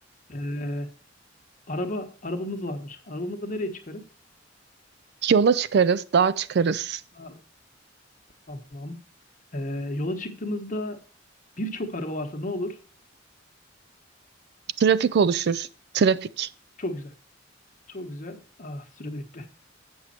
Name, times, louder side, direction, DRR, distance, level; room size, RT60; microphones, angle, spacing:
voice 1, 0.3-0.9 1.7-4.0 7.1-7.4 8.5-9.0 9.5-11.0 11.6-12.8 16.8-17.1 17.9-19.4, left 1 dB, 40° left, 1.2 m, -32 dB
voice 2, 5.2-7.0 14.8-15.7 15.9-16.5, right 6 dB, 55° right, 0.4 m, -21 dB
8.2 x 6.4 x 4.2 m
head